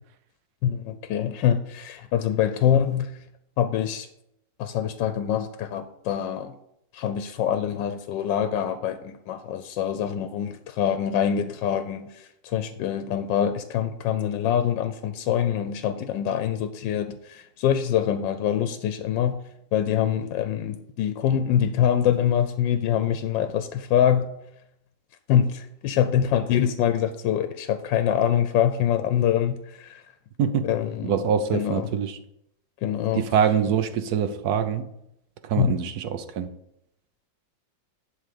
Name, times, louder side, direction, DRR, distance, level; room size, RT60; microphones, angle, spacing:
voice 1, 0.6-3.1 3.6-4.1 4.6-6.5 6.9-19.4 19.7-24.3 25.3-30.0 30.6-31.1 31.5-31.9 32.8-33.2 35.6-35.7, left 9 dB, 85° left, 9 dB, 1.3 m, -24 dB
voice 2, 31.0-32.2 33.1-34.9 35.4-36.5, right 7 dB, 65° right, 9 dB, 1.2 m, -24 dB
11.0 x 3.8 x 6.7 m, 0.78 s
omnidirectional pair, 1.9 m